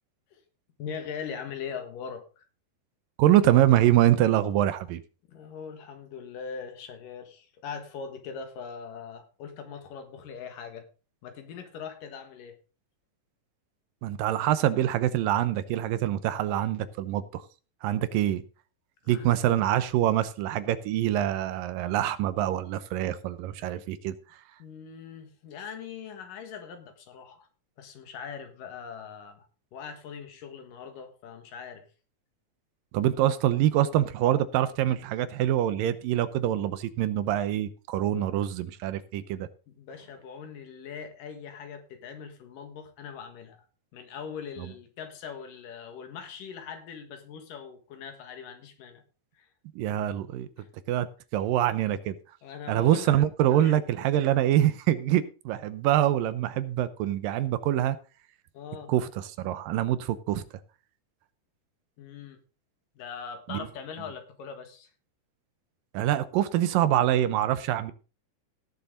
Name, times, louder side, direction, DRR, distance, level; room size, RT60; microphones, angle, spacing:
voice 1, 0.8-2.4 5.3-10.8 11.2-12.6 19.1-19.4 24.6-27.5 27.8-29.5 29.7-31.9 39.7-43.7 43.9-49.0 49.3-49.5 50.6-50.7 52.4-53.2 53.6-53.8 58.5-58.9 62.0-62.4 63.0-64.9, left 6 dB, 75° left, 7 dB, 3.3 m, -41 dB
voice 2, 3.2-5.0 14.0-17.4 17.8-18.4 19.1-24.2 32.9-39.5 49.8-50.5 50.9-51.1 51.3-52.2 52.7-58.0 58.9-60.4 63.5-63.7 65.9-67.9, right 12 dB, 85° right, 14 dB, 2.6 m, -25 dB
17.5 x 7.2 x 3.9 m, 0.35 s
omnidirectional pair, 3.9 m